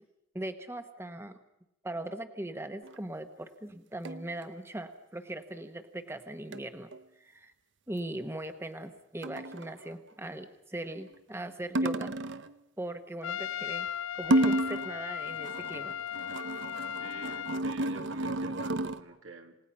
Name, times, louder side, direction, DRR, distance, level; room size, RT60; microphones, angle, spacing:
voice 1, 0.3-1.4 1.8-6.9 7.2-7.5 7.9-12.2 12.8-13.9 14.1-15.9, right 1 dB, 15° right, 8 dB, 1.1 m, -39 dB
sound 1, 2.8-3.0 4.1-4.4 6.5-7.0 9.2-9.7 11.8-12.5 14.2-15.0 15.3-19.0, right 1 dB, 65° right, 0.9 m, -31 dB
Trumpet, 13.2-17.7, left 9 dB, 80° left, 0.7 m, -37 dB
voice 2, 17.0-19.6, right 3 dB, 90° right, 4 dB, 2.7 m, -48 dB
28.5 x 18.0 x 5.6 m, 0.87 s
head